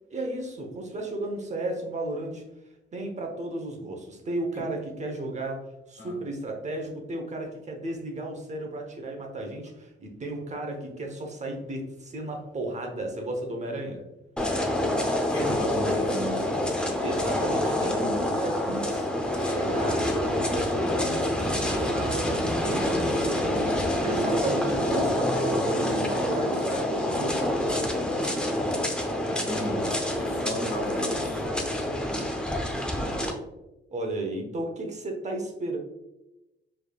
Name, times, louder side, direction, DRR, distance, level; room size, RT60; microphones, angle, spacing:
voice 1, 0.1-2.4 2.9-14.0 17.0-19.1 19.4-23.7 24.0-28.0 33.9-35.8, right 1 dB, 35° right, 2 dB, 0.9 m, -34 dB
sound 1, 14.4-33.3, left 1 dB, 5° left, 0.7 m, -27 dB
voice 2, 15.3-16.4 29.4-29.9 30.2-31.5, left 2 dB, 80° left, 0 dB, 1.3 m, -35 dB
4.6 x 3.3 x 2.3 m, 0.96 s
cardioid pair, 90°, 20 cm